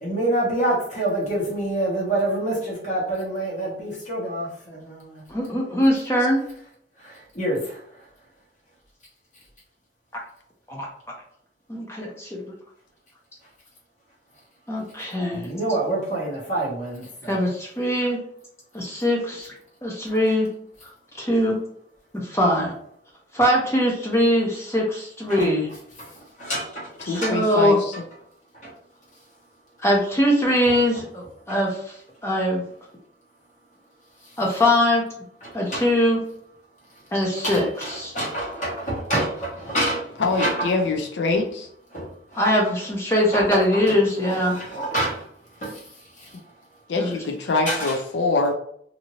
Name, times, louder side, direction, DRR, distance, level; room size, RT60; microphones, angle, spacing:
voice 1, 0.0-5.2 7.0-7.8 15.3-17.4 25.3-25.5 26.0-26.1 26.4-27.3 28.6-28.7 30.6-30.7 31.5-31.6 35.4-35.9 37.4-40.7 41.9-42.5 43.3-45.3 45.6-45.9 46.2-46.4 47.6-48.0, right 1 dB, 45° left, -5 dB, 1.1 m, -27 dB
voice 2, 5.3-6.5 10.7-10.9 11.7-12.5 14.7-15.5 17.3-18.2 18.7-19.5 19.8-20.5 20.8-20.9 21.2-21.6 22.1-22.7 23.3-25.7 27.1-27.8 29.8-32.0 32.2-32.6 34.4-35.0 35.5-36.2 37.1-38.1 42.4-44.6 47.0-47.1, left 1 dB, 15° left, -2 dB, 0.5 m, -22 dB
voice 3, 27.0-27.9 40.2-41.7 46.9-48.5, left 3 dB, 80° left, 3 dB, 0.5 m, -24 dB
2.7 x 2.6 x 3.0 m, 0.67 s
head